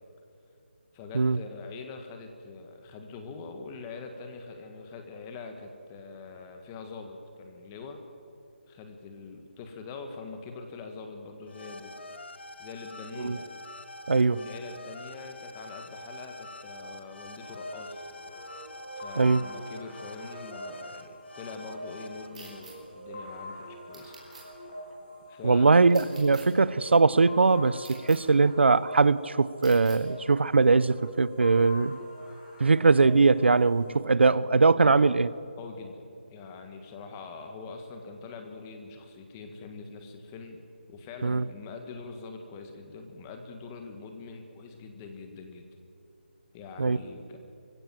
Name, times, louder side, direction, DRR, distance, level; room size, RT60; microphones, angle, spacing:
voice 1, 0.9-8.0 8.7-11.9 12.6-13.5 14.3-18.0 19.0-24.1 25.3-25.9 34.8-35.2 35.6-36.0 36.3-40.6 40.9-45.7 46.5-47.4, left 4 dB, 15° left, 1.5 m, -43 dB
sound 1, 11.5-22.6, left 2 dB, 75° left, 1.9 m, -45 dB
voice 2, 14.1-14.4 19.2-19.4 25.4-32.0 32.6-35.3 41.2-41.4 46.8-47.0, right 4 dB, 80° right, 0.7 m, -21 dB
sound 2, 17.4-34.0, equal, 30° left, 6.3 m, -45 dB
sound 3, 22.3-22.7 23.9-24.4 25.9-26.4 27.8-28.2 29.6-30.0, right 4 dB, 40° right, 5.0 m, -48 dB
25.0 x 16.0 x 7.6 m
hypercardioid pair, 170°, 6 cm